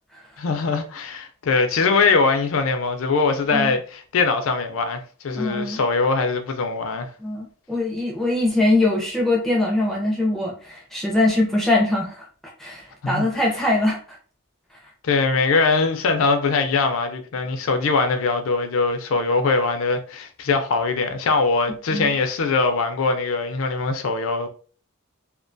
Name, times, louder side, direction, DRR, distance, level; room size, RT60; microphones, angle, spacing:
voice 1, 0.4-7.1 13.0-13.3 15.0-24.5, left 4 dB, 65° left, 0.4 m, -22 dB
voice 2, 5.4-5.8 7.2-12.3 12.6-14.0 21.9-22.1, left 2 dB, ahead, 0.4 m, -22 dB
2.2 x 2.2 x 2.5 m
head